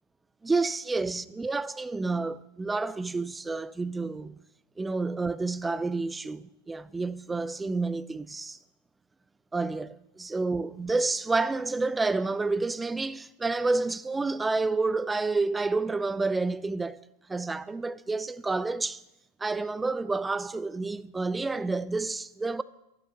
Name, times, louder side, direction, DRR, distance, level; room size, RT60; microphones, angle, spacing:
voice 1, 0.4-4.4 4.8-8.6 9.5-17.0 17.3-19.0 19.4-22.6, right 3 dB, 10° right, 0.4 m, -29 dB
11.5 x 11.0 x 5.7 m
supercardioid pair, 140°, 0 cm